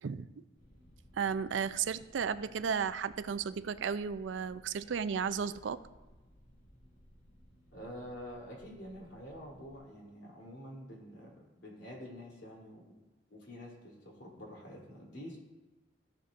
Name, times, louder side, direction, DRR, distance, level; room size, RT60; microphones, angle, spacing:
sound 1, 0.6-9.8, equal, 45° left, 2.2 m, -60 dB
voice 1, 1.1-5.8, right 6 dB, 85° right, 14 dB, 0.4 m, -34 dB
voice 2, 7.7-12.9 13.3-15.4, equal, 70° left, -3 dB, 3.1 m, -47 dB
15.5 x 6.6 x 2.5 m, 1.2 s
head